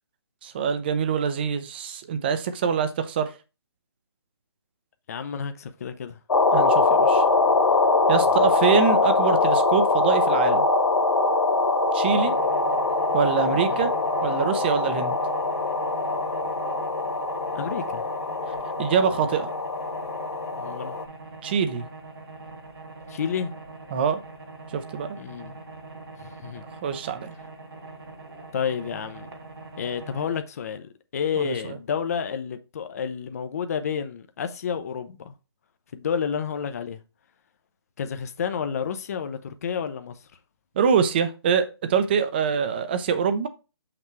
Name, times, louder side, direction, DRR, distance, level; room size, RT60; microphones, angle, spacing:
voice 1, 0.4-3.3 6.5-7.2 8.1-10.7 11.9-12.3 13.1-13.9 14.2-15.1 18.8-19.5 21.4-21.8 23.9-24.2 24.7-25.2 26.8-27.3 31.4-31.8 40.8-43.5, right 6 dB, 25° right, 0.6 m, -24 dB
voice 2, 5.1-6.2 8.3-8.5 13.7-13.9 17.5-18.0 20.5-21.0 23.1-23.5 25.2-25.6 26.2-26.6 28.5-29.3 29.8-35.3 35.9-37.0 38.0-40.2, left 7 dB, 35° left, 0.6 m, -30 dB
sound 1, 6.3-21.0, left 3 dB, 80° left, 1.0 m, -23 dB
sound 2, 12.1-30.4, right 3 dB, 65° right, 2.7 m, -42 dB
6.2 x 5.9 x 3.2 m
hypercardioid pair, 165°, 14 cm